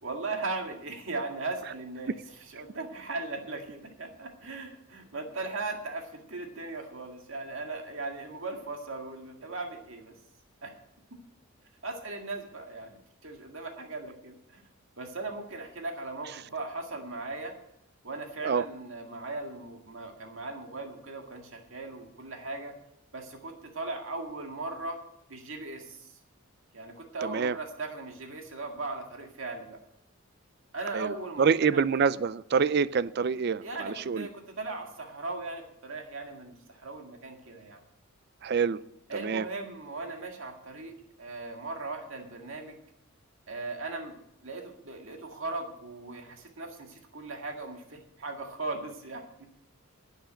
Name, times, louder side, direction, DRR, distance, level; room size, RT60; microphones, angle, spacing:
voice 1, 0.0-10.2 10.6-10.8 11.8-14.6 15.0-17.6 18.0-22.7 23.1-25.0 25.3-26.2 26.7-29.8 30.7-31.8 33.6-37.8 39.1-42.8 43.5-44.2 44.4-49.2, right 3 dB, 65° right, 3 dB, 2.0 m, -38 dB
voice 2, 27.2-27.6 30.9-34.3 38.4-38.8 39.2-39.4, right 6 dB, 45° right, 17 dB, 0.4 m, -26 dB
10.0 x 8.0 x 8.8 m, 0.80 s
head